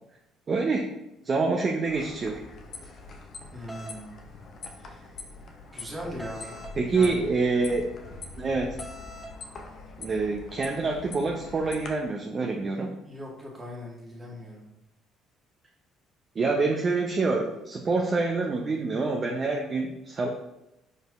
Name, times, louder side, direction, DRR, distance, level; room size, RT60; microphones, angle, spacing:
voice 1, 0.5-0.8 1.2-2.4 6.7-7.9 8.4-8.8 10.0-12.9 16.4-20.3, right 3 dB, 40° right, 1 dB, 0.6 m, -26 dB
sound 1, 1.8-11.9, left 3 dB, 50° left, 0.7 m, -43 dB
voice 2, 3.5-4.1 4.8-5.1 5.7-7.3 13.0-14.7, equal, 25° right, -2 dB, 1.6 m, -40 dB
sound 2, 3.7-4.0 6.2-6.8 8.8-9.3, left 1 dB, ahead, 0.8 m, -42 dB
5.0 x 4.3 x 2.5 m, 0.89 s
hypercardioid pair, 55°, 0 cm